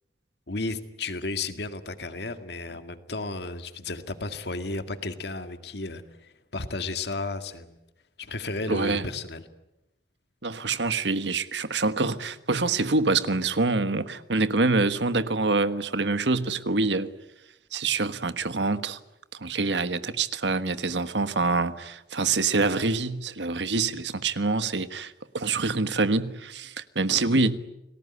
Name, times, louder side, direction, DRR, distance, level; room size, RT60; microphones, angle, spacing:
voice 1, 0.5-7.7 8.2-9.5, left 3 dB, 70° left, 2.1 m, -33 dB
voice 2, 8.7-9.0 10.4-17.1 17.7-19.0 19.3-27.6, right 3 dB, 85° right, 1.4 m, -26 dB
29.5 x 19.5 x 9.8 m
head